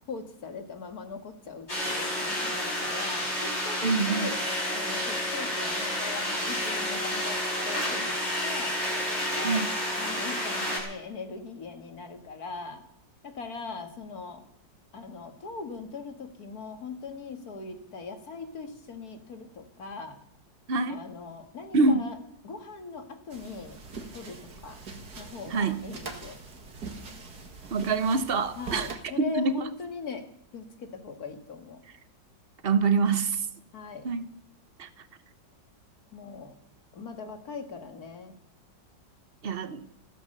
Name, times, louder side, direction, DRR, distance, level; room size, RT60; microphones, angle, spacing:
voice 1, 0.1-4.4 4.7-7.4 7.7-8.1 8.4-8.7 9.4-9.6 10.0-12.8 13.2-14.4 14.9-20.2 20.9-22.2 22.4-23.8 24.1-24.4 24.6-24.8 25.2-26.3 28.6-30.2 30.5-31.8 33.7-34.0 36.1-36.5 36.9-38.3, left 4 dB, 55° left, 6 dB, 2.4 m, -40 dB
sound 1, 1.7-10.8, left 1 dB, 35° left, 5.7 m, -30 dB
voice 2, 3.8-4.3 9.4-9.7 20.7-21.0 21.7-22.0 25.5-25.8 27.7-29.7 32.6-33.4 34.0-34.3 34.8-34.9 39.4-39.8, right 4 dB, 40° right, 12 dB, 1.0 m, -25 dB
sound 2, 23.3-28.9, right 4 dB, 60° right, 2.5 m, -43 dB
15.5 x 13.5 x 6.7 m, 0.76 s
omnidirectional pair, 2.0 m